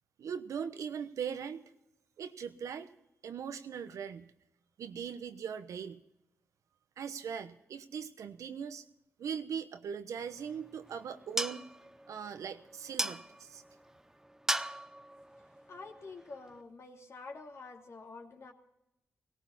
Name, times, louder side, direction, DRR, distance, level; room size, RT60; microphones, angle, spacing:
voice 1, 0.2-1.6 2.2-2.9 3.2-4.3 4.8-6.0 7.0-8.8 9.2-11.7 12.1-13.6, right 7 dB, 80° right, 10 dB, 1.0 m, -40 dB
sound 1, 10.2-16.6, right 1 dB, 10° right, 0.6 m, -40 dB
voice 2, 15.7-18.5, left 3 dB, 60° left, 1 dB, 2.7 m, -48 dB
18.0 x 17.5 x 4.2 m, 0.84 s
cardioid pair, 60°, 5 cm